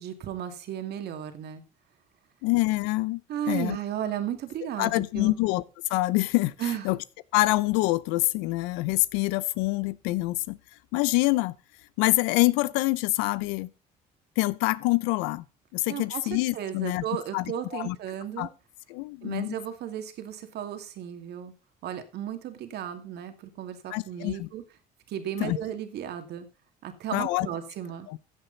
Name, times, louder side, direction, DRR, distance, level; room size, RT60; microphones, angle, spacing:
voice 1, 0.0-1.6 3.3-5.4 6.6-6.8 15.9-18.5 19.2-21.5 21.8-24.6 25.1-26.5 26.8-28.1, right 10 dB, 65° right, 2.4 m, -34 dB
voice 2, 2.4-3.2 3.5-3.8 4.8-5.6 5.9-7.0 7.3-10.6 10.9-11.6 12.0-13.7 14.4-15.4 15.7-17.0 17.3-17.4 17.7-18.0 18.4-18.5 18.9-19.5 23.9-24.5 25.4-25.6 27.1-27.5 28.1-28.2, left 20 dB, 80° left, 0.7 m, -26 dB
15.0 x 8.1 x 4.0 m
supercardioid pair, 75°, 18 cm